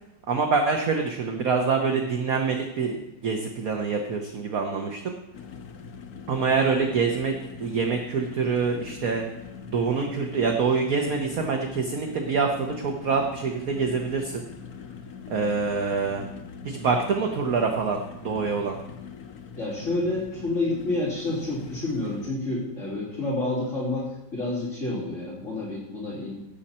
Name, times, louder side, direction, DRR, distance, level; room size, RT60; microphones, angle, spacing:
voice 1, 0.3-3.0 3.2-5.2 6.3-9.3 9.7-14.4 15.3-16.2 16.6-18.7, right 5 dB, 55° right, 3 dB, 1.3 m, -25 dB
sound 1, 5.3-22.3, left 6 dB, 60° left, 1.3 m, -42 dB
voice 2, 19.6-26.4, left 2 dB, 40° left, -8 dB, 3.7 m, -29 dB
17.0 x 7.9 x 4.3 m, 0.95 s
omnidirectional pair, 2.1 m